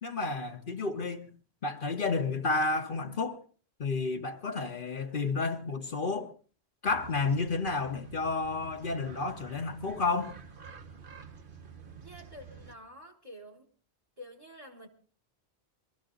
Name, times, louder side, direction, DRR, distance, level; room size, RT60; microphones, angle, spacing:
voice 1, 0.0-1.3 1.6-3.4 3.8-6.3 6.8-10.4, left 3 dB, 55° left, 1.2 m, -31 dB
sound 1, 6.9-12.8, right 6 dB, 55° right, 1.2 m, -49 dB
voice 2, 12.0-13.7 14.2-14.9, equal, 35° right, 1.5 m, -49 dB
21.0 x 13.0 x 3.8 m
omnidirectional pair, 1.1 m